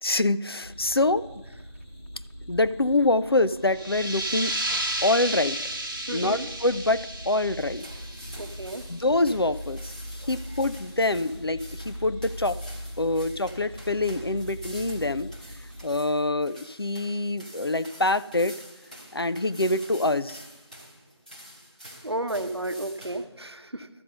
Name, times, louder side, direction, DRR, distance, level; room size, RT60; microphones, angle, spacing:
voice 1, 0.0-1.3 2.5-4.5 5.0-5.6 6.1-7.9 8.9-12.6 13.0-15.3 15.8-18.6 19.1-20.4, left 2 dB, 60° left, 13 dB, 0.4 m, -25 dB
sound 1, 0.6-15.9, equal, 25° right, 1.2 m, -41 dB
sound 2, 3.7-9.1, right 1 dB, 45° right, 1.0 m, -33 dB
voice 2, 6.1-6.5 8.4-8.8 10.2-10.3 22.0-23.9, right 1 dB, 65° right, 9 dB, 0.8 m, -33 dB
sound 3, 7.6-23.3, equal, 15° left, 1.0 m, -47 dB
13.0 x 5.4 x 5.3 m, 1.0 s
figure-of-eight pair, 175°, 14 cm